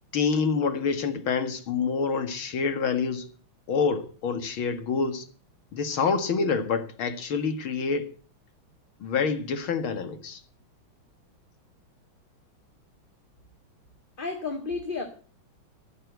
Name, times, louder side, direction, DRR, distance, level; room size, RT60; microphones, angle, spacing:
voice 1, 0.1-3.3 3.7-5.3 5.7-8.1 9.0-10.4, left 5 dB, 75° left, 2.6 m, -27 dB
voice 2, 14.2-15.0, left 4 dB, 25° left, 2.0 m, -31 dB
14.5 x 11.0 x 8.0 m
omnidirectional pair, 2.3 m